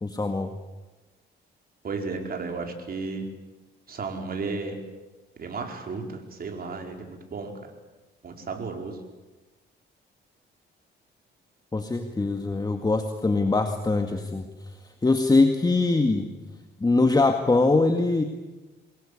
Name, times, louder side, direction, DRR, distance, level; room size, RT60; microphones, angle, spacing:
voice 1, 0.0-0.5 11.7-14.4 15.0-16.3 16.8-18.2, left 3 dB, 20° left, 5 dB, 2.0 m, -22 dB
voice 2, 1.8-3.2 3.9-4.8 5.4-7.5 8.2-9.0, right 4 dB, 50° right, 3 dB, 5.0 m, -33 dB
24.5 x 21.0 x 8.5 m, 1.2 s
cardioid pair, 90°, 20 cm